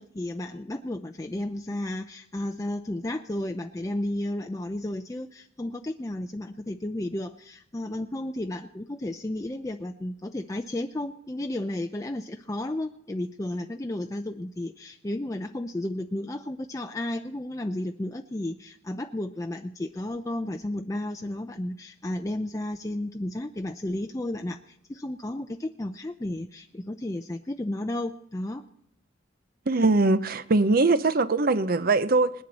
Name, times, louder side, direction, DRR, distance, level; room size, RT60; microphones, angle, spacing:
voice 1, 0.0-28.6, left 1 dB, 20° left, 0.5 m, -33 dB
voice 2, 29.7-32.3, right 3 dB, 50° right, 0.7 m, -21 dB
20.0 x 10.5 x 4.1 m
head